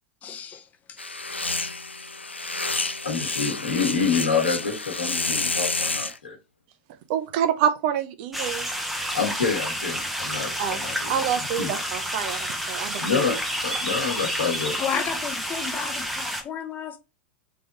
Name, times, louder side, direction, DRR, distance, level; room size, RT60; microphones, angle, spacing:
voice 1, 0.2-1.0 14.8-17.0, left 7 dB, 25° left, 0.9 m, -32 dB
sound 1, 1.0-6.2, left 3 dB, 90° left, 0.4 m, -29 dB
voice 2, 3.0-6.3 8.9-11.1 11.6-11.7 13.0-13.4 13.6-14.7, left 5 dB, 70° left, 1.5 m, -27 dB
voice 3, 7.1-8.7 10.6-13.4, right 9 dB, 50° right, 0.7 m, -27 dB
sound 2, 8.3-16.4, equal, ahead, 0.9 m, -30 dB
3.5 x 3.4 x 4.0 m
figure-of-eight pair, 90°, 6 cm